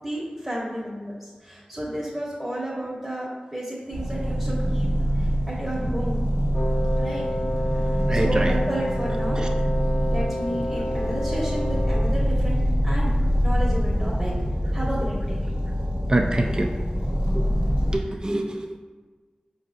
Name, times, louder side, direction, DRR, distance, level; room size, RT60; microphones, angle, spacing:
voice 1, 0.0-6.3 7.0-7.2 7.7-9.4 10.1-13.2 13.4-14.3 14.7-15.5, right 1 dB, 10° right, -5 dB, 0.9 m, -32 dB
sound 1, 3.9-18.0, equal, 70° right, 1.1 m, -24 dB
Wind instrument woodwind instrument, 6.5-12.2, left 1 dB, 45° left, 0.6 m, -30 dB
voice 2, 8.1-8.5 9.4-9.5 16.0-16.7 17.1-17.5 17.9-18.8, right 1 dB, 30° right, 4 dB, 0.3 m, -26 dB
4.8 x 2.7 x 2.3 m, 1.4 s
cardioid pair, 40°, 3 cm